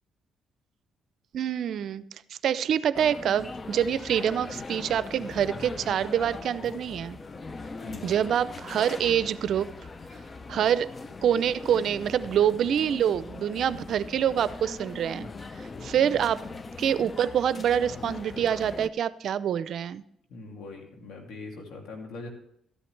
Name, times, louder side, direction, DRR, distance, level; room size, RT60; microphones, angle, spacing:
voice 1, 1.3-2.0 2.4-7.2 8.0-9.7 10.5-10.9 11.2-15.3 15.8-16.4 16.8-20.0, right 9 dB, 70° right, 15 dB, 0.5 m, -26 dB
sound 1, 2.9-18.9, left 3 dB, 35° left, 0.5 m, -40 dB
voice 2, 7.8-8.3 16.1-16.3 20.3-22.3, left 3 dB, 80° left, 2 dB, 2.6 m, -42 dB
13.5 x 10.0 x 3.3 m, 0.73 s
cardioid pair, 90°, 0 cm